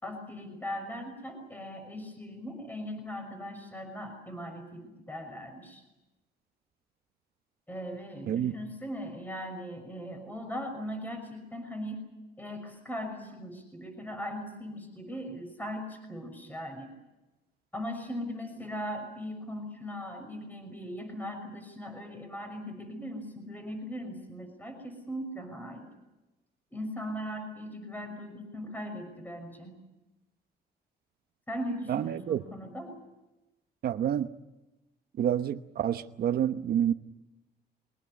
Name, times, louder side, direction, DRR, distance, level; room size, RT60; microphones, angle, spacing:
voice 1, 0.0-5.8 7.7-12.1 12.4-16.9 17.7-25.9 26.7-29.8 31.5-33.0, equal, 10° left, 6.1 m, -39 dB
voice 2, 31.9-32.4 33.8-34.3 35.2-36.9, right 10 dB, 60° right, 1.0 m, -28 dB
23.5 x 19.5 x 9.6 m
cardioid pair, 105°, 18 cm